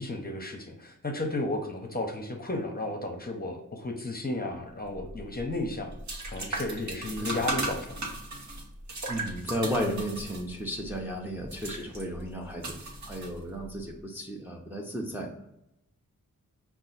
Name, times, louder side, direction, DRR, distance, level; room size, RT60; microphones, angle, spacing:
voice 1, 0.0-5.9 6.3-8.1, left 2 dB, 30° left, 2 dB, 0.7 m, -33 dB
sound 1, 4.9-13.8, right 2 dB, 60° right, 1.0 m, -37 dB
voice 2, 7.2-7.5 9.1-12.7 13.1-15.3, equal, 5° right, 0 dB, 0.6 m, -34 dB
5.4 x 2.4 x 3.9 m, 0.83 s
wide cardioid pair, 110°, 32 cm